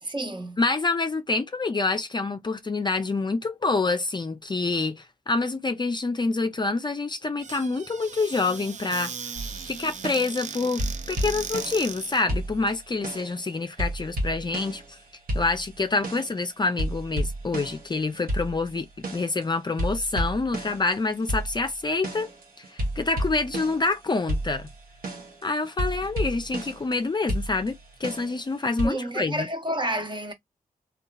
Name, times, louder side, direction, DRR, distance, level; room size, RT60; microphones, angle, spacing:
voice 1, 0.0-0.6 28.8-30.3, right 1 dB, 30° right, 0.8 m, -30 dB
voice 2, 0.6-9.3 9.7-15.0 15.3-18.9 19.1-22.3 22.6-24.7 25.4-29.5, left 3 dB, 30° left, 0.4 m, -27 dB
Squeak / Cupboard open or close, 7.4-12.3, right 6 dB, 55° right, 0.4 m, -38 dB
sound 1, 9.4-10.5 10.8-12.0 12.3-13.4 13.8-15.0 15.3-16.4 16.8-19.4 19.8-24.0 24.3-26.9 27.3-28.9, right 1 dB, 80° right, 0.9 m, -32 dB
2.7 x 2.3 x 2.3 m
cardioid pair, 60°, 15 cm